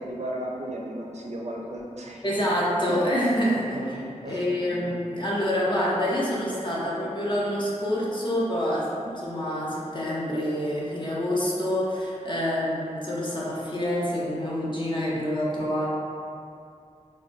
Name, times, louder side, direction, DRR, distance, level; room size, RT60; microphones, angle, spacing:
voice 1, 0.0-2.3 2.9-3.0 3.5-4.0 4.2-4.4 4.7-4.9, right 1 dB, 60° right, -2 dB, 0.4 m, -35 dB
voice 2, 2.2-3.8 4.3-15.8, equal, 40° left, -6 dB, 0.7 m, -27 dB
3.7 x 2.2 x 2.5 m, 2.5 s
wide cardioid pair, 50°, 13 cm